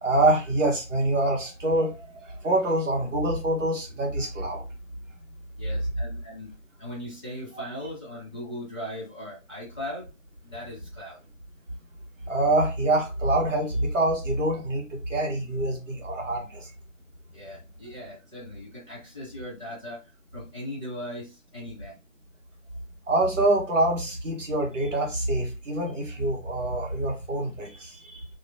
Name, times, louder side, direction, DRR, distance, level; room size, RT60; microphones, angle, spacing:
voice 1, 0.0-4.6 12.3-16.7 23.1-28.3, right 1 dB, 70° right, -1 dB, 1.4 m, -25 dB
voice 2, 5.6-6.5 6.8-10.1 10.4-11.2 17.3-21.9, left 1 dB, ahead, -16 dB, 0.9 m, -39 dB
2.9 x 2.2 x 2.6 m, 0.28 s
hypercardioid pair, 170°, 39 cm